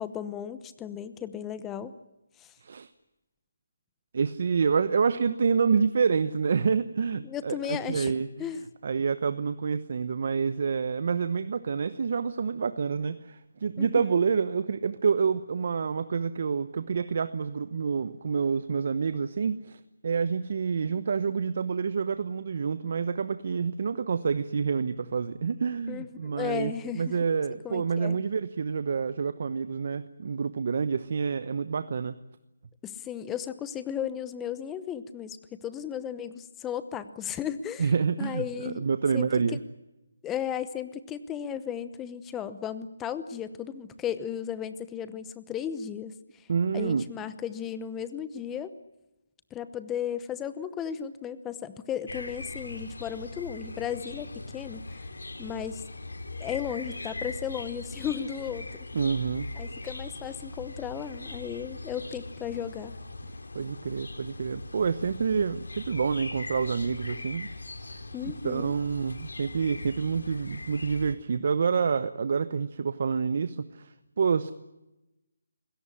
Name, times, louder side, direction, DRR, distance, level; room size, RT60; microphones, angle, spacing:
voice 1, 0.0-1.9 2.4-2.5 7.2-8.1 8.4-8.7 13.8-14.2 25.9-27.2 27.6-28.2 32.8-37.9 38.2-38.8 39.1-39.3 40.2-46.1 46.7-48.8 49.5-54.3 54.5-54.9 55.4-55.8 56.4-58.7 59.6-62.9 68.1-68.7, left 9 dB, 10° left, 13 dB, 0.9 m, -35 dB
voice 2, 4.1-8.5 8.8-32.2 37.8-39.6 46.5-47.1 58.9-59.5 63.5-67.5 67.8-74.5, right 5 dB, 50° right, 13 dB, 0.9 m, -28 dB
sound 1, 52.1-71.1, left 2 dB, 90° left, 3.5 m, -40 dB
25.5 x 17.5 x 9.9 m, 0.99 s
hypercardioid pair, 160°, 0 cm